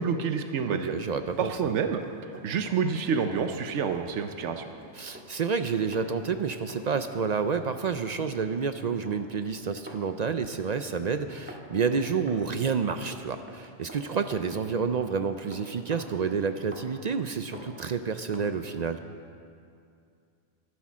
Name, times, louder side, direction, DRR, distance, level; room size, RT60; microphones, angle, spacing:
voice 1, 0.0-0.9 1.4-2.0 2.4-4.7, right 6 dB, 85° right, 7 dB, 1.0 m, -28 dB
voice 2, 0.7-1.5 4.9-19.0, right 5 dB, 55° right, 9 dB, 0.5 m, -29 dB
Run, 1.7-18.5 18.9-19.0, equal, 10° right, 1.5 m, -48 dB
12.5 x 11.5 x 6.2 m, 2.4 s
omnidirectional pair, 1.2 m